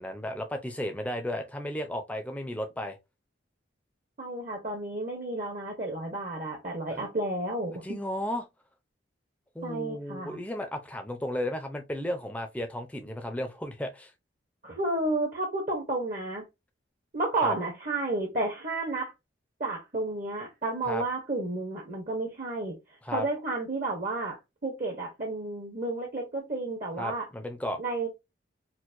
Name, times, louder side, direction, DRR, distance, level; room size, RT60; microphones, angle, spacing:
voice 1, 0.0-3.0 6.9-7.0 7.8-8.5 9.5-14.1 17.4-17.5 20.9-21.0 23.0-23.2 27.0-27.8, left 1 dB, 5° left, 0.5 m, -34 dB
voice 2, 4.2-8.0 9.6-10.4 14.6-16.4 17.1-19.1 19.6-22.8 23.1-27.3 27.8-28.1, right 2 dB, 40° right, 0.8 m, -31 dB
4.4 x 2.1 x 2.5 m
head